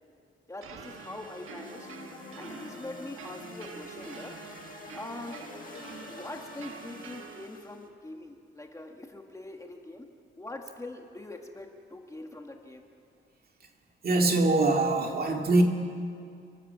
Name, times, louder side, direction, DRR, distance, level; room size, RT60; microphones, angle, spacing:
voice 1, 0.5-1.9 2.3-4.3 4.9-5.4 6.1-10.1 10.4-12.8, left 2 dB, 15° left, 3 dB, 1.4 m, -43 dB
sound 1, 0.6-7.5, right 6 dB, 85° right, 1.4 m, -46 dB
sound 2, 0.8-7.9, left 4 dB, 40° left, 1.8 m, -47 dB
voice 2, 14.0-15.6, right 2 dB, 45° right, 2 dB, 2.2 m, -23 dB
27.0 x 13.0 x 7.7 m, 2.4 s
wide cardioid pair, 145°, 21 cm